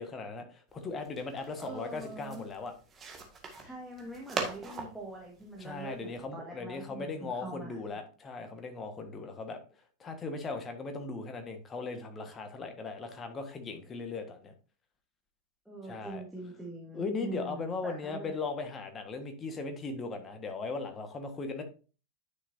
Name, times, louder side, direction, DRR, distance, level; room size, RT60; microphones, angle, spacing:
voice 1, 0.0-2.7 5.6-9.6 10.0-14.5 15.8-16.2 16.9-21.6, left 4 dB, 20° left, 6 dB, 1.5 m, -38 dB
sound 1, 0.7-6.3, right 4 dB, 20° right, 1.9 m, -42 dB
voice 2, 1.3-2.4 3.6-7.9 9.0-9.2 15.7-18.4, right 2 dB, ahead, -3 dB, 1.8 m, -44 dB
10.0 x 6.2 x 2.7 m, 0.35 s
figure-of-eight pair, 90°, 0 cm